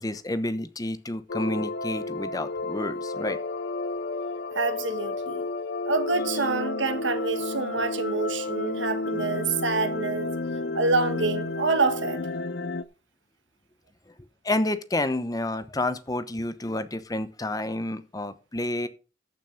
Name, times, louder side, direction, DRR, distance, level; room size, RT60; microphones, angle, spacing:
voice 1, 0.0-3.4 14.4-18.9, left 1 dB, 20° left, 0.9 m, -29 dB
sound 1, 1.3-12.8, left 3 dB, 65° left, 0.6 m, -31 dB
voice 2, 4.5-5.5 5.8-10.3 10.7-12.2, right 3 dB, 90° right, 1.5 m, -27 dB
14.0 x 6.1 x 5.2 m
head